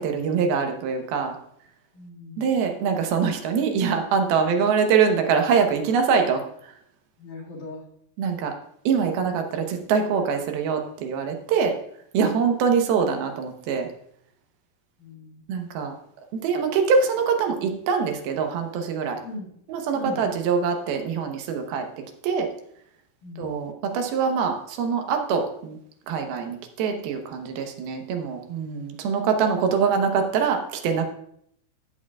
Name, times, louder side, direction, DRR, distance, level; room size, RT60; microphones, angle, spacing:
voice 1, 0.0-1.4 2.4-6.4 8.2-8.5 8.9-11.7 12.1-13.9 15.5-15.9 16.4-19.2 19.7-21.9 22.2-22.5 23.4-25.8 26.1-31.1, right 6 dB, 90° right, 4 dB, 3.0 m, -24 dB
voice 2, 1.9-2.6 7.2-7.8 15.0-15.4 19.2-19.5 19.9-20.2 23.2-23.5, left 2 dB, 60° left, -4 dB, 3.5 m, -39 dB
15.0 x 7.4 x 2.4 m, 0.70 s
omnidirectional pair, 4.2 m